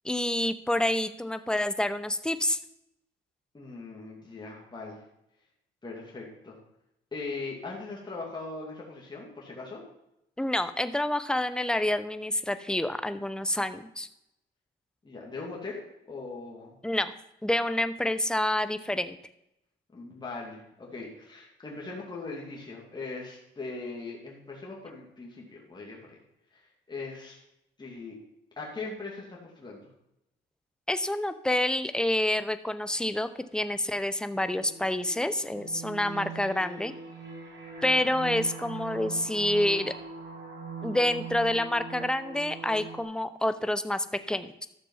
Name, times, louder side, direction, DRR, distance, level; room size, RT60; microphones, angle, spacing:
voice 1, 0.0-2.6 10.4-14.1 16.8-17.1 17.4-19.2 30.9-36.9 37.8-39.9 40.8-44.7, left 1 dB, 5° left, 11 dB, 0.8 m, -28 dB
voice 2, 3.5-5.0 5.8-6.6 7.1-9.8 15.0-16.8 19.9-26.1 26.5-26.6 26.9-27.4 27.8-28.2 28.6-29.9, left 3 dB, 20° left, -3 dB, 2.6 m, -40 dB
sound 1, 34.3-43.0, right 4 dB, 65° right, 3.4 m, -41 dB
12.5 x 6.8 x 5.6 m, 0.83 s
cardioid pair, 90°, 20 cm